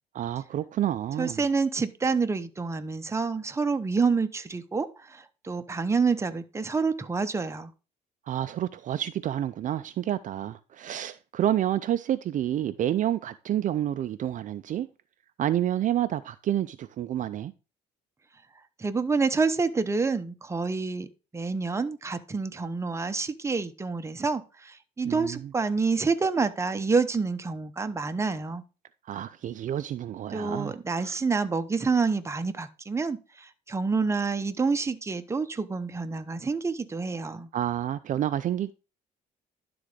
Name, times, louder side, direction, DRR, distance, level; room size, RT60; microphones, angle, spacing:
voice 1, 0.1-1.4 8.3-14.9 15.4-17.5 25.0-25.5 29.0-31.2 37.5-38.7, right 11 dB, 50° right, 0.5 m, -29 dB
voice 2, 1.2-7.7 18.8-21.1 21.3-28.6 30.3-37.5, right 4 dB, 15° right, 0.8 m, -28 dB
11.5 x 3.9 x 4.9 m
cardioid pair, 110°, 17 cm